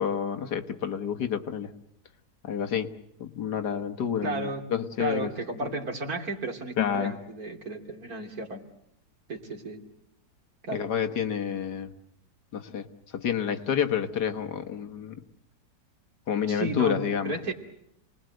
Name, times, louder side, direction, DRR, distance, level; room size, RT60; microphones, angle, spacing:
voice 1, 0.0-1.7 2.4-2.9 3.2-5.3 5.6-5.7 6.8-7.2 10.7-11.9 12.5-15.2 16.3-17.4, left 8 dB, 75° left, 7 dB, 1.9 m, -29 dB
voice 2, 4.2-4.6 5.0-8.7 9.3-9.8 10.6-10.9 16.5-17.5, right 2 dB, 60° right, 3 dB, 3.3 m, -33 dB
28.5 x 20.5 x 7.8 m, 0.76 s
omnidirectional pair, 1.8 m